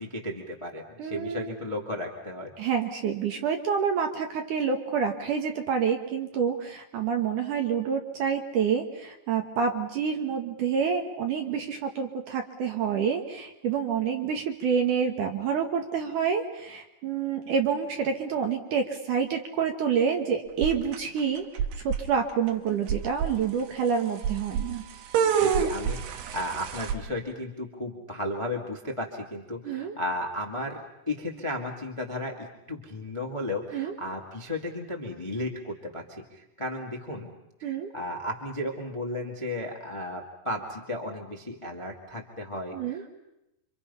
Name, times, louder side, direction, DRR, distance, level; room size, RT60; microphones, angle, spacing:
voice 1, 0.0-2.5 25.4-37.3 37.6-43.1, left 1 dB, 15° left, 0 dB, 1.0 m, -34 dB
voice 2, 1.0-1.6 2.6-21.5 21.8-24.8 29.6-29.9 33.7-33.9 37.6-37.9 42.7-43.0, right 6 dB, 65° right, 4 dB, 2.3 m, -28 dB
sound 1, 20.6-21.2 21.6-22.0 22.5-22.6 22.9-23.3 24.2-24.6 25.1-26.9, right 8 dB, 80° right, 3.3 m, -26 dB
28.5 x 25.0 x 5.6 m, 0.90 s
omnidirectional pair, 4.7 m